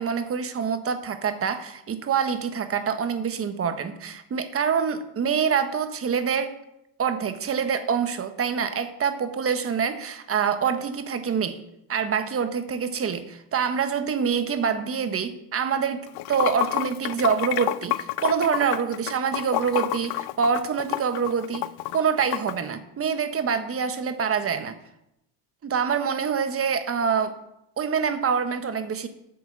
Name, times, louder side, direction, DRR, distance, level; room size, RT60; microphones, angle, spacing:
voice 1, 0.0-6.5 7.0-11.6 11.9-21.6 21.9-24.8 25.6-27.3 27.8-29.1, right 6 dB, 30° right, 9 dB, 1.2 m, -26 dB
Water / Sink (filling or washing), 16.1-22.5, left 16 dB, 60° left, 0.6 m, -29 dB
9.0 x 6.1 x 7.7 m, 0.84 s
supercardioid pair, 105°, 42 cm